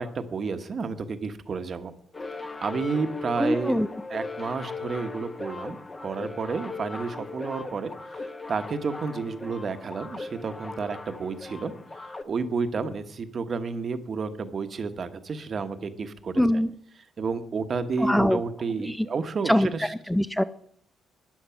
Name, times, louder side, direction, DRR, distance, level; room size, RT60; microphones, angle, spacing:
voice 1, 0.0-1.9 2.3-3.8 4.1-11.7 12.2-16.6 17.2-19.9, right 4 dB, 45° right, 9 dB, 1.1 m, -31 dB
sound 1, 2.1-12.2, left 3 dB, 25° left, 1.0 m, -38 dB
voice 2, 3.4-3.9 16.4-16.7 18.0-18.4 18.8-19.1 19.5-20.4, equal, 5° left, 12 dB, 0.4 m, -23 dB
12.0 x 9.9 x 5.8 m, 0.67 s
cardioid pair, 90°, 0 cm